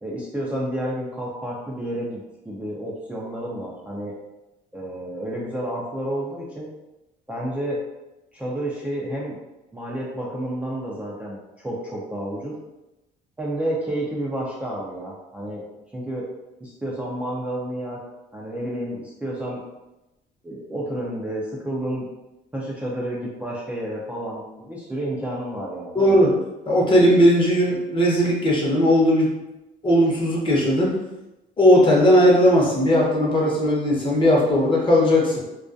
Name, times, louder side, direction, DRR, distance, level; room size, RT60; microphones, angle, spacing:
voice 1, 0.0-4.1 4.7-6.7 7.3-7.8 8.3-9.4 9.7-12.5 13.4-15.6 15.9-16.3 16.6-18.0 18.3-19.6 20.4-22.1 22.5-26.0, right 1 dB, 10° right, -6 dB, 0.4 m, -30 dB
voice 2, 25.9-26.3 26.7-29.3 29.8-31.0 31.6-35.4, equal, 30° left, -3 dB, 0.8 m, -17 dB
2.3 x 2.3 x 2.5 m, 0.97 s
cardioid pair, 110°, 17 cm